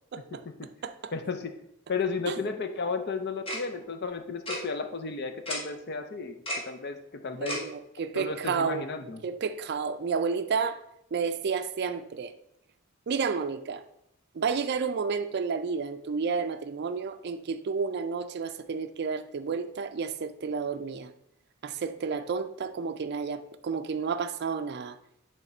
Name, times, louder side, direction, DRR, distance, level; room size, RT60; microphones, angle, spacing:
voice 1, 0.1-0.4 0.8-1.1 2.3-2.4 7.4-8.9 9.2-10.8 11.1-12.3 13.1-13.8 14.3-21.1 21.6-24.9, right 5 dB, 50° right, 0.4 m, -31 dB
voice 2, 1.1-1.5 1.9-6.3 6.7-7.6 8.1-9.2, left 4 dB, 50° left, 0.6 m, -33 dB
Tick-tock, 3.5-3.6 4.5-4.6 5.5-5.6 6.5-6.6 7.5-7.6, equal, 25° left, 1.6 m, -31 dB
8.1 x 3.6 x 4.2 m
head